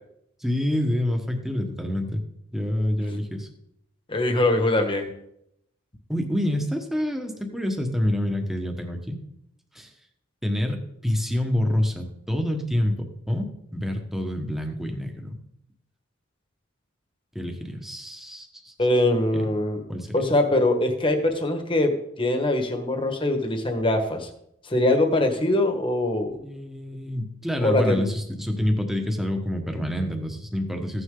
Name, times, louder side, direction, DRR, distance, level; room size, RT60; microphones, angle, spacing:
voice 1, 0.4-2.2 2.5-3.5 6.1-9.2 9.7-9.9 10.4-15.4 17.3-18.7 19.3-19.5 19.9-20.3 26.4-31.0, left 1 dB, ahead, 3 dB, 1.4 m, -27 dB
voice 2, 4.1-5.1 18.8-19.8 20.1-21.9 22.2-24.3 24.6-26.4 27.6-28.0, left 1 dB, 25° left, 5 dB, 1.5 m, -22 dB
15.5 x 9.8 x 3.9 m, 0.77 s
head